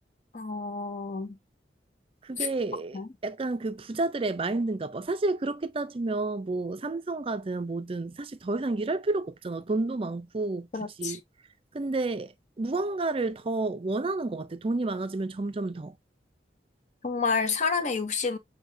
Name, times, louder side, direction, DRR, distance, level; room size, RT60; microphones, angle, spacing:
voice 1, 0.3-1.4 2.9-3.1 10.7-11.2 17.0-18.4, left 4 dB, 40° left, 0.7 m, -29 dB
voice 2, 2.2-10.7 11.0-11.2 11.7-16.0, right 2 dB, 30° right, 0.5 m, -30 dB
6.3 x 2.8 x 2.6 m
head